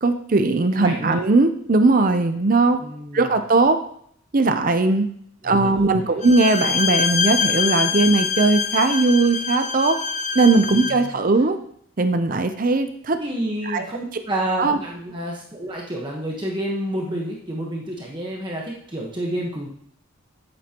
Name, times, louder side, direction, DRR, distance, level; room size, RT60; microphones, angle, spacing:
voice 1, 0.0-2.8 3.1-3.8 4.3-5.1 5.4-10.0 10.3-11.6 12.0-13.2 13.6-13.9 14.6-14.8, right 3 dB, 40° right, 9 dB, 0.6 m, -19 dB
voice 2, 0.7-1.2 2.8-3.3 5.4-6.2 10.9-11.2 13.2-19.7, right 1 dB, 20° right, -2 dB, 1.2 m, -29 dB
Bowed string instrument, 6.2-11.1, left 6 dB, 35° left, 0.6 m, -24 dB
13.5 x 8.5 x 2.9 m, 0.67 s
head